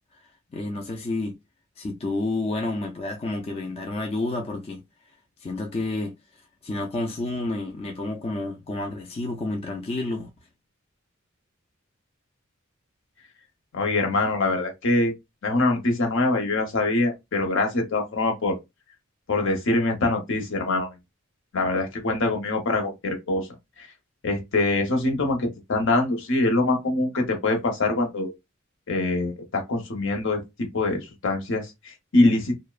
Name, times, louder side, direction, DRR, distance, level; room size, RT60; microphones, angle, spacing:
voice 1, 0.5-1.3 1.8-4.8 5.4-6.1 6.6-10.3, left 2 dB, 30° left, 0.3 m, -30 dB
voice 2, 13.7-15.1 15.4-18.6 19.3-21.0 21.5-23.5 23.8-23.9 24.2-28.3 28.9-32.5, left 2 dB, 65° left, 0.7 m, -24 dB
2.6 x 2.1 x 2.3 m
head